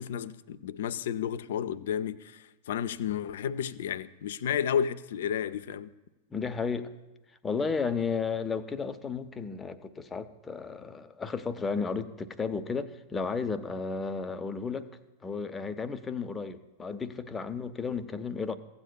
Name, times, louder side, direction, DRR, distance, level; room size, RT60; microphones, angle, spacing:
voice 1, 0.0-5.9, left 8 dB, 60° left, 0.4 m, -32 dB
voice 2, 6.3-6.9 7.4-14.9 15.2-18.6, left 5 dB, 15° left, 0.7 m, -33 dB
16.5 x 8.0 x 2.3 m
figure-of-eight pair, 90°, 0 cm